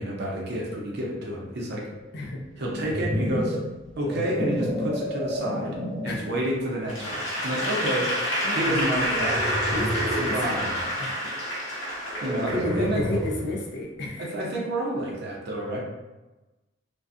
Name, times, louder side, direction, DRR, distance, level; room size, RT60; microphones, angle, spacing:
voice 1, 0.0-1.8 2.6-3.6 4.0-5.8 6.0-8.1 8.5-9.4 10.3-10.8 12.2-13.0 14.2-15.8, right 1 dB, 60° right, -2 dB, 0.6 m, -29 dB
sound 1, 2.6-6.2 6.8-7.1 8.9-10.4 12.1-13.6, equal, ahead, 0.6 m, -30 dB
Applause / Crowd, 6.9-13.3, equal, 85° left, 0.8 m, -28 dB
voice 2, 8.4-8.9 9.7-10.7 11.0-11.3 11.9-12.1 12.5-14.3, left 2 dB, 60° left, 0 dB, 0.5 m, -32 dB
2.5 x 2.2 x 2.4 m, 1.1 s
head